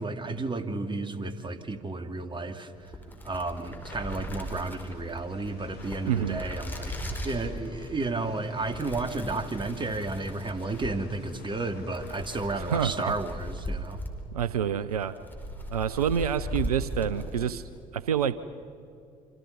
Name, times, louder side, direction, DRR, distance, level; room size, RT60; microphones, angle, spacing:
voice 1, 0.0-2.7 3.2-6.9 7.2-14.0, right 2 dB, 25° right, 9 dB, 2.4 m, -32 dB
sound 1, 2.8-17.7, equal, 10° left, 4.9 m, -38 dB
sound 2, 3.8-12.9, left 6 dB, 60° left, 2.5 m, -53 dB
voice 2, 6.1-6.4 12.6-13.2 14.3-15.2 15.7-17.6 17.9-18.4, right 8 dB, 85° right, 15 dB, 0.5 m, -27 dB
27.5 x 26.5 x 5.5 m, 2.6 s
figure-of-eight pair, 55°, 19 cm